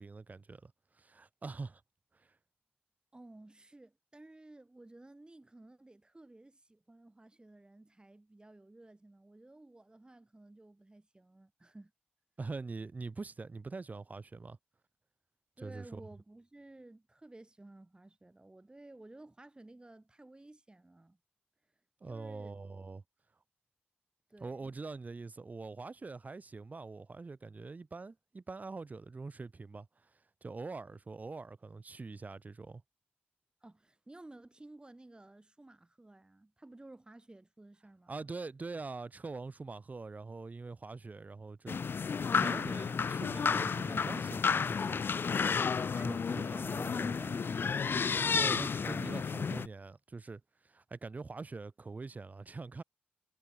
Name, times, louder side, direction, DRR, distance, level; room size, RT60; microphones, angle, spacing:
voice 1, 0.0-1.8 2.1-2.3 12.4-14.6 15.6-16.0 22.0-23.0 24.4-30.1 30.4-32.8 38.1-41.8 42.3-45.0 46.0-47.1 48.1-52.8, right 3 dB, 45° right, 1.0 m, -44 dB
voice 2, 3.1-11.9 15.6-21.2 22.1-22.6 24.3-24.8 33.6-38.1 45.9-48.0, right 2 dB, 25° right, 3.8 m, -54 dB
sound 1, 41.7-49.7, left 5 dB, 70° left, 0.6 m, -32 dB
wide cardioid pair, 75°, 4 cm